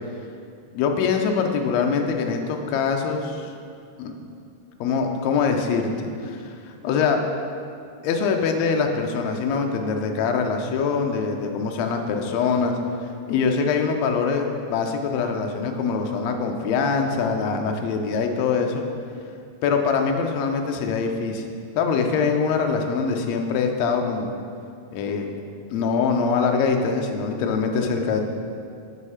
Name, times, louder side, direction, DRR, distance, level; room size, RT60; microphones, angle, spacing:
voice 1, 0.7-3.5 4.0-4.1 4.8-7.2 8.0-12.8 13.3-18.8 19.6-21.4 21.8-24.3 24.9-25.3 25.7-28.2, left 5 dB, 75° left, 3 dB, 1.6 m, -23 dB
8.1 x 5.3 x 5.6 m, 2.5 s
omnidirectional pair, 3.8 m